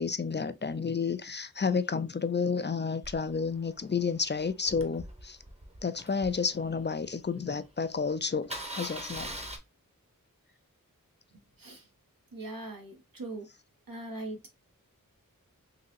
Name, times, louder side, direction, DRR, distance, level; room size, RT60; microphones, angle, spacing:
voice 1, 0.0-5.4 5.8-9.3, left 5 dB, 35° left, 0.4 m, -31 dB
Engine starting, 3.0-7.2 7.7-7.8 8.0-8.1 8.4-9.6, right 1 dB, 20° right, 0.8 m, -42 dB
voice 2, 11.3-11.9 12.3-13.5 13.9-14.6, right 2 dB, 80° right, 1.1 m, -41 dB
3.8 x 2.9 x 2.6 m
wide cardioid pair, 40°, 34 cm